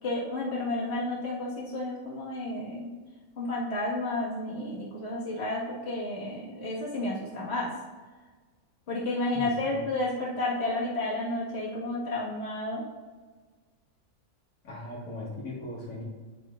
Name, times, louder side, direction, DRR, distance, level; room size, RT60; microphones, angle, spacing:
voice 1, 0.0-2.9 3.4-7.7 8.9-12.9, left 2 dB, 45° left, -6 dB, 2.0 m, -31 dB
voice 2, 9.3-9.9 14.6-16.0, left 1 dB, 65° left, -7 dB, 2.3 m, -39 dB
8.5 x 8.1 x 2.5 m, 1.3 s
omnidirectional pair, 1.5 m